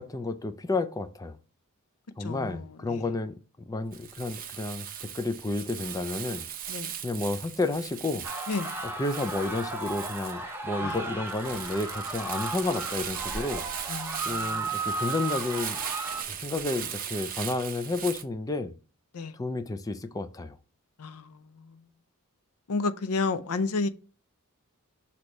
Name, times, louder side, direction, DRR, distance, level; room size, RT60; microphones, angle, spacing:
voice 1, 0.0-1.4 2.2-3.4 3.7-6.4 7.0-8.2 8.8-13.6 14.2-15.8 16.3-18.7 19.3-20.6, left 2 dB, 15° left, 0.4 m, -31 dB
voice 2, 2.2-3.0 6.7-6.9 8.5-8.7 10.8-11.0 13.9-14.6 19.1-19.3 21.0-21.5 22.7-23.9, left 3 dB, 80° left, 0.5 m, -31 dB
Crumpling crinkling, 3.9-18.2, right 8 dB, 40° right, 0.7 m, -38 dB
sound 1, 8.2-16.2, right 2 dB, 10° right, 0.8 m, -35 dB
6.2 x 2.9 x 5.2 m
head